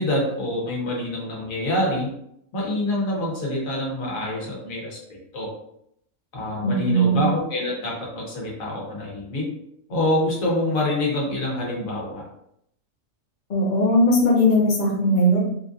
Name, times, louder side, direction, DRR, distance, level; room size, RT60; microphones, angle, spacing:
voice 1, 0.0-2.1 2.5-5.5 6.3-9.5 9.9-12.2, left 1 dB, 90° left, -3 dB, 1.5 m, -26 dB
voice 2, 6.6-7.2 13.5-15.4, equal, 40° left, -2 dB, 0.9 m, -19 dB
4.2 x 2.4 x 2.6 m, 0.74 s
omnidirectional pair, 1.4 m